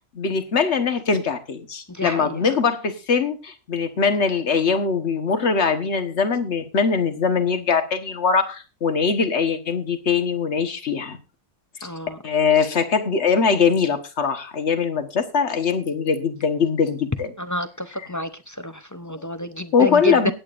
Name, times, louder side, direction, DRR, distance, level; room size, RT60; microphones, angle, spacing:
voice 1, 0.1-11.2 12.2-17.3 17.9-18.1 19.2-19.3 19.7-20.3, left 5 dB, 65° left, 7 dB, 1.6 m, -22 dB
voice 2, 11.8-12.2 17.4-18.3 18.6-20.3, left 1 dB, 25° left, 9 dB, 0.4 m, -28 dB
23.5 x 8.8 x 2.5 m, 0.32 s
omnidirectional pair, 1.3 m